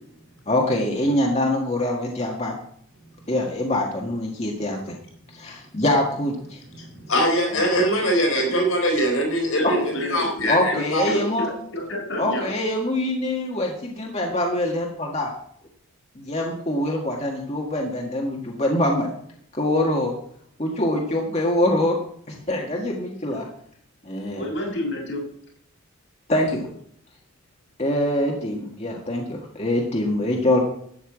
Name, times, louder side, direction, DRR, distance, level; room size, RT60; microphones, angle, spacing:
voice 1, 0.5-2.5 3.3-5.0 5.3-6.6 7.5-7.6 9.6-9.7 10.5-11.5 12.2-15.3 16.1-19.1 19.5-20.1 20.6-22.0 22.3-23.4 24.0-24.5 26.3-26.7 27.8-30.6, left 1 dB, 30° left, 0 dB, 1.6 m, -24 dB
voice 2, 6.8-11.1, equal, 85° left, 1 dB, 4.0 m, -22 dB
voice 3, 9.5-12.5 24.4-25.2, left 1 dB, 65° left, -2 dB, 6.1 m, -30 dB
13.0 x 5.6 x 8.6 m, 0.65 s
head